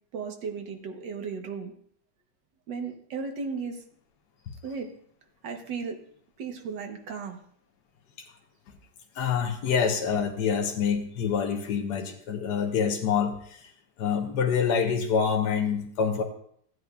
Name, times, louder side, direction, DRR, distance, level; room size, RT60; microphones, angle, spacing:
voice 1, 0.1-1.7 2.7-3.8 4.6-4.9 5.4-6.0 6.4-7.4, right 5 dB, 85° right, 4 dB, 1.8 m, -35 dB
voice 2, 9.1-13.7 14.0-16.2, left 6 dB, 75° left, 2 dB, 1.4 m, -26 dB
15.5 x 9.5 x 2.3 m, 0.64 s
omnidirectional pair, 1.9 m